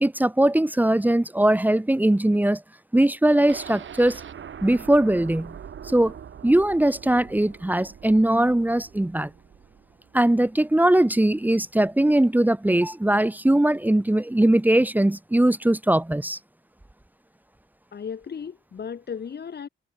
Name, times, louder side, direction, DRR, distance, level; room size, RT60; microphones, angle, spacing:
voice 1, 0.0-2.6 2.9-4.2 4.6-5.5 5.8-6.1 6.4-9.3 10.1-16.4, right 1 dB, 10° right, 1.4 m, -20 dB
sound 1, 3.5-11.4 11.7-11.8 12.2-12.3, right 8 dB, 65° right, 5.1 m, -43 dB
voice 2, 17.9-19.7, left 7 dB, 55° left, 4.4 m, -35 dB
wide cardioid pair, 145°, 21 cm